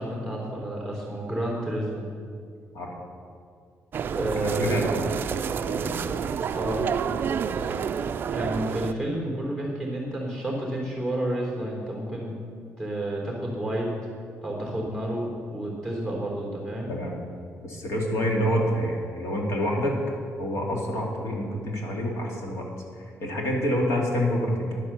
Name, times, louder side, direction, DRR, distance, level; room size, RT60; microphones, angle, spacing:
voice 1, 0.0-2.1 4.0-4.8 6.5-6.9 7.5-7.8 8.3-12.3 12.8-13.9 14.4-16.9, right 1 dB, 15° left, -2 dB, 3.6 m, -30 dB
sound 1, 3.9-8.9, right 7 dB, 40° right, 0.4 m, -29 dB
voice 2, 4.2-5.1 5.6-6.2 16.9-17.1 17.6-20.0 20.4-22.7 23.0-24.8, equal, 60° left, 0 dB, 2.4 m, -27 dB
10.5 x 9.2 x 7.0 m, 2.2 s
cardioid pair, 170°, 5 cm